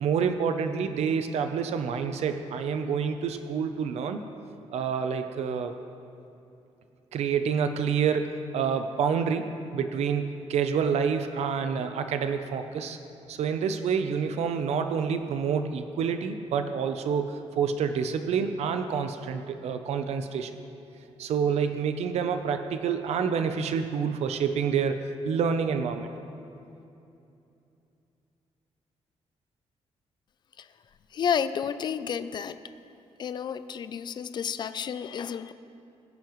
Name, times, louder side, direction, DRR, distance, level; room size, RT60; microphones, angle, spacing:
voice 1, 0.0-4.2 4.7-5.7 7.1-13.0 13.3-20.5 21.2-26.1, right 6 dB, 70° right, 8 dB, 0.6 m, -28 dB
voice 2, 31.1-32.6 33.2-35.5, left 7 dB, 40° left, 12 dB, 0.4 m, -31 dB
20.5 x 10.5 x 3.1 m, 2.7 s
wide cardioid pair, 180°, 12 cm